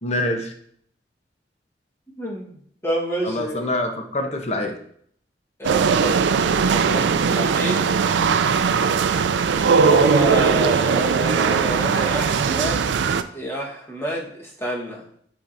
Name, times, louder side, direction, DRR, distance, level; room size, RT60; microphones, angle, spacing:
voice 1, 0.0-0.5 3.2-4.8, left 1 dB, 40° left, 4 dB, 0.8 m, -25 dB
voice 2, 2.2-2.5 2.8-3.6 5.6-7.9 9.8-12.9 13.3-15.0, right 1 dB, 15° left, -2 dB, 1.3 m, -28 dB
sound 1, 5.6-13.2, right 5 dB, 80° right, 0.4 m, -19 dB
9.1 x 4.3 x 2.6 m, 0.64 s
head